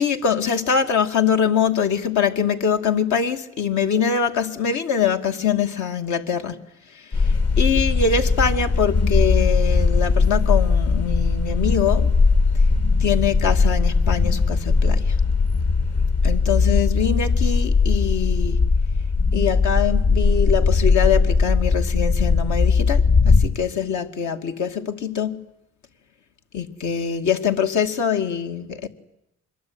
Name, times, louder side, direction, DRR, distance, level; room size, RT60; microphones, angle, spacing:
voice 1, 0.0-6.6 6.9-12.1 13.0-15.2 16.2-18.6 19.3-25.4 26.5-28.9, left 7 dB, 70° left, 6 dB, 2.4 m, -23 dB
sound 1, 7.1-23.5, left 4 dB, 55° left, 2.9 m, -19 dB
25.5 x 22.0 x 9.6 m, 0.83 s
cardioid pair, 90°, 30 cm